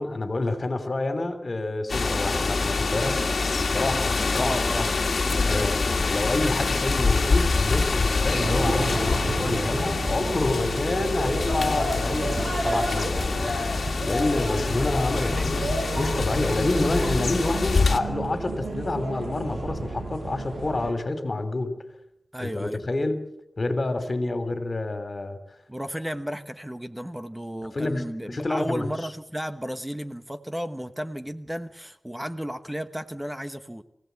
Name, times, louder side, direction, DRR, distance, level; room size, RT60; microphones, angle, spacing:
voice 1, 0.0-3.2 3.6-4.9 5.4-5.8 6.1-13.5 14.0-15.7 15.9-21.8 22.4-23.2 23.6-25.4 27.6-28.9, left 2 dB, 45° left, 9 dB, 3.1 m, -28 dB
sound 1, 1.9-18.0, left 3 dB, 70° left, 1.9 m, -25 dB
voice 2, 4.3-6.2 15.1-15.5 22.3-22.8 25.7-33.8, equal, 10° right, 9 dB, 1.2 m, -34 dB
sound 2, 8.3-20.9, right 2 dB, 65° right, 6.4 m, -32 dB
24.0 x 16.5 x 8.2 m, 0.80 s
wide cardioid pair, 80°, 0 cm